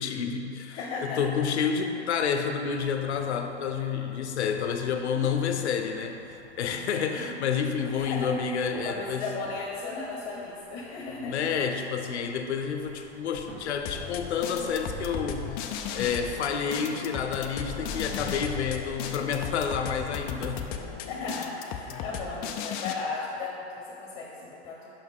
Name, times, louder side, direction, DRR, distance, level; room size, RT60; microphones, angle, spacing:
voice 1, 0.0-9.3 11.2-20.8 21.9-22.0, left 6 dB, 85° left, 5 dB, 0.7 m, -29 dB
voice 2, 0.7-1.2 7.9-8.4 8.8-11.3 21.1-24.9, left 3 dB, 50° left, -3 dB, 1.0 m, -35 dB
sound 1, 2.6-21.0, left 2 dB, 5° right, 1.1 m, -46 dB
sound 2, 13.8-22.9, left 8 dB, 30° left, 0.4 m, -36 dB
6.4 x 5.7 x 3.6 m, 2.8 s
hypercardioid pair, 125°, 33 cm